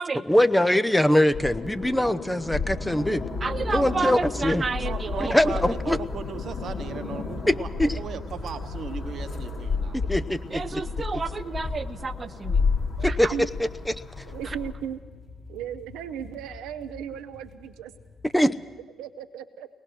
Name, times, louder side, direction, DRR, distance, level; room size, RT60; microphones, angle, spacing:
voice 1, 0.3-3.2 3.7-4.6 5.3-6.0 7.5-7.9 10.1-10.8 13.0-13.3 18.3-18.5, left 1 dB, 5° left, 11 dB, 0.8 m, -22 dB
sound 1, 1.3-14.7, left 4 dB, 55° left, 3.2 m, -31 dB
voice 2, 3.4-5.3 10.5-12.7 13.0-13.3 14.4-14.6, right 4 dB, 40° right, 13 dB, 0.8 m, -31 dB
voice 3, 4.8-10.0, right 6 dB, 55° right, 10 dB, 1.2 m, -37 dB
voice 4, 5.3-6.7 8.4-8.7 9.2-10.0 12.2-12.3 13.0-13.5 14.3-15.0 15.5-17.9 19.0-19.7, right 9 dB, 75° right, 8 dB, 0.7 m, -38 dB
sound 2, 12.5-18.8, left 3 dB, 30° left, 3.0 m, -49 dB
21.5 x 19.0 x 6.3 m, 1.4 s
hypercardioid pair, 45°, 0 cm